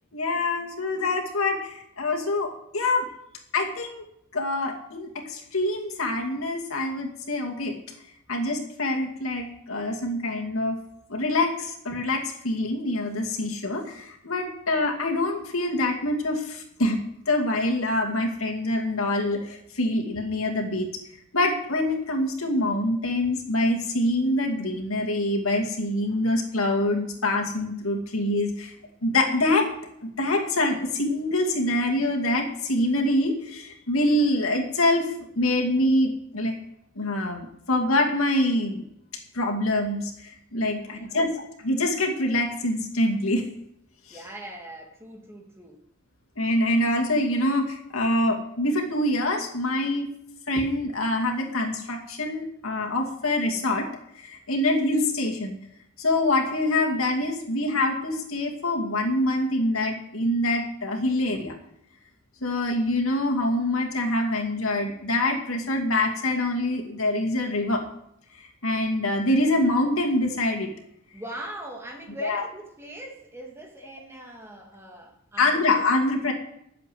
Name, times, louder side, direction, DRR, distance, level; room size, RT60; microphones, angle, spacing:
voice 1, 0.1-3.1 3.5-4.0 4.3-7.7 8.3-10.8 11.1-17.0 17.3-20.9 21.3-28.7 29.0-29.7 30.0-35.1 35.4-36.5 37.0-38.8 39.3-41.3 41.6-43.5 46.4-50.1 50.5-53.9 54.1-55.6 56.0-61.5 62.4-67.8 68.4-70.7 72.2-72.4 75.4-76.3, left 1 dB, 85° left, 1 dB, 2.4 m, -25 dB
voice 2, 40.7-41.4 44.1-45.8 71.1-75.6, right 1 dB, 10° right, 2 dB, 1.8 m, -41 dB
11.5 x 7.7 x 7.9 m, 0.75 s
head